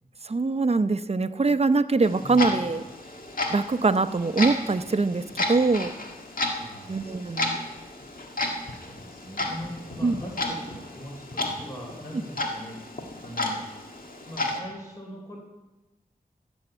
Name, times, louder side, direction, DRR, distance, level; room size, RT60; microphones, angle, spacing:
voice 1, 0.2-2.8 3.5-5.9 6.9-7.6 10.0-10.2, right 3 dB, 40° right, 12 dB, 0.7 m, -23 dB
Clock, 2.0-14.6, left 2 dB, 65° left, 1.8 m, -33 dB
voice 2, 2.2-2.5 6.4-7.0 8.4-12.8 13.2-13.6 14.2-15.4, equal, 20° left, -2 dB, 4.0 m, -41 dB
15.0 x 7.2 x 7.8 m, 1.1 s
wide cardioid pair, 50°, 15 cm